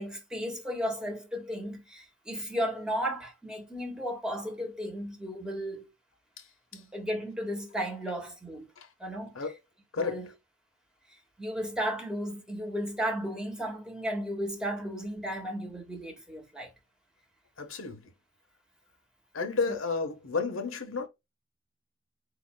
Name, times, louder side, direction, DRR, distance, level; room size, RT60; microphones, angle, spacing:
voice 1, 0.0-5.9 6.7-8.7 9.0-9.3 10.0-10.3 11.4-16.7 19.7-19.8, equal, 5° right, 1.7 m, -34 dB
voice 2, 17.6-18.1 19.3-21.1, left 4 dB, 85° left, 1.2 m, -32 dB
8.1 x 2.9 x 2.2 m
head